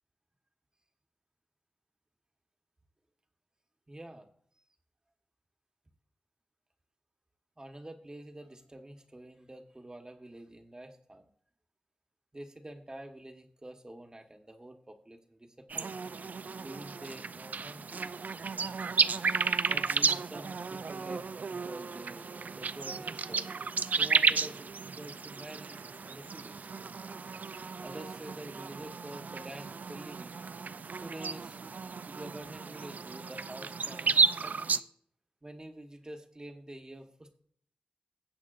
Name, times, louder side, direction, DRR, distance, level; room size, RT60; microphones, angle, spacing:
voice 1, 3.9-4.3 4.5-4.6 7.6-11.3 12.3-15.9 16.6-18.1 19.7-21.3 21.6-23.5 24.0-26.7 27.8-30.4 31.0-31.6 32.1-34.9 35.4-37.4, right 1 dB, 25° right, 5 dB, 1.2 m, -47 dB
sound 1, 15.7-34.8, right 5 dB, 65° right, 0.3 m, -33 dB
20.0 x 8.1 x 2.5 m, 0.62 s
wide cardioid pair, 70°, 3 cm